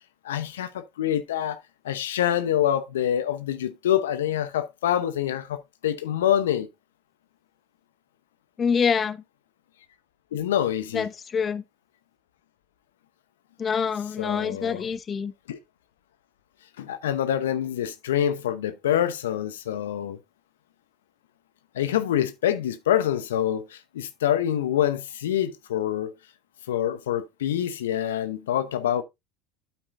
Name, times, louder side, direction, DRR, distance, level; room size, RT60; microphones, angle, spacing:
voice 1, 0.2-1.6 1.8-6.7 10.3-11.1 14.0-14.9 15.5-15.6 16.8-20.2 21.7-26.1 26.7-29.0, left 10 dB, 80° left, 0.9 m, -26 dB
voice 2, 8.6-9.2 10.9-11.6 13.6-15.3, left 6 dB, 30° left, 0.8 m, -26 dB
8.8 x 8.7 x 2.6 m
hypercardioid pair, 80°, 0 cm